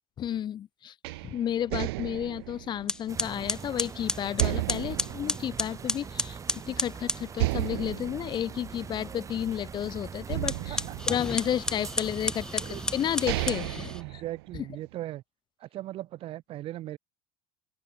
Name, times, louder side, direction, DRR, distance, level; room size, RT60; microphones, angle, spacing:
voice 1, 0.2-0.9 1.2-10.8 11.1-14.2, left 10 dB, 35° left, 1.1 m, -32 dB
sound 1, 1.0-3.8 4.4-6.3 6.7-6.8 7.3-9.7 10.3-11.9 12.6-12.7 13.1-14.9, right 22 dB, 80° right, 1.9 m, -34 dB
sound 2, 2.3-2.5 2.9-7.3 10.4-14.0, left 2 dB, 5° left, 0.7 m, -33 dB
sound 3, 3.1-13.5, right 6 dB, 25° right, 3.4 m, -42 dB
voice 2, 10.7-11.2 11.5-11.6 12.6-12.8 13.9-15.2 15.6-17.0, right 14 dB, 45° right, 1.2 m, -39 dB
open air
supercardioid pair, 115°, 13 cm